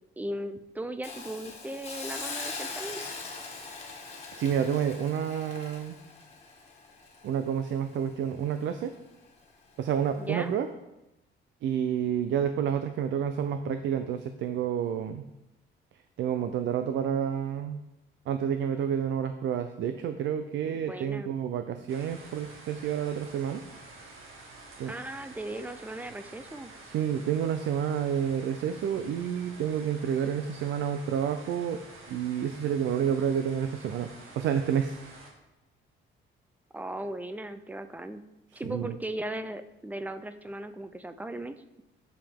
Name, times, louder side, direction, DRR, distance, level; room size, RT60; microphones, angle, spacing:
voice 1, 0.2-3.0 10.2-10.5 20.6-21.3 24.9-26.7 36.7-38.2 38.5-41.8, right 1 dB, 10° right, 10 dB, 0.4 m, -37 dB
Hiss, 1.0-8.1 8.5-8.6, left 4 dB, 30° left, 1.6 m, -41 dB
voice 2, 4.3-6.0 7.2-9.0 9.8-10.7 11.6-15.3 16.2-17.8 18.3-23.6 24.8-24.9 26.8-31.8 32.1-34.1 34.4-35.0 38.5-38.9, right 8 dB, 70° right, 8 dB, 0.6 m, -29 dB
sound 1, 21.9-35.3, right 3 dB, 90° right, 1.8 m, -49 dB
10.5 x 7.0 x 3.6 m, 0.94 s
cardioid pair, 160°, 20 cm